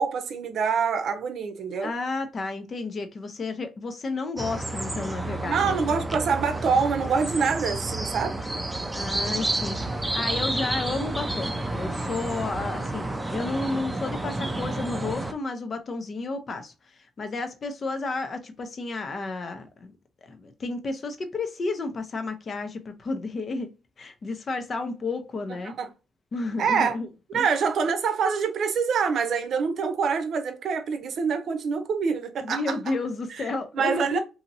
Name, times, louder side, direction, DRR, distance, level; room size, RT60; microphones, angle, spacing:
voice 1, 0.0-1.9 5.4-8.4 25.7-25.9 26.6-27.0 27.3-32.7 33.7-34.2, right 6 dB, 65° right, 0.6 m, -25 dB
voice 2, 1.8-5.8 8.9-13.0 13.3-19.9 20.2-23.7 24.0-25.7 26.3-27.1 27.3-27.4 32.4-34.2, left 3 dB, 45° left, 0.7 m, -32 dB
sound 1, 4.4-15.3, right 2 dB, 10° right, 0.5 m, -30 dB
2.9 x 2.7 x 2.6 m
cardioid pair, 90°, 0 cm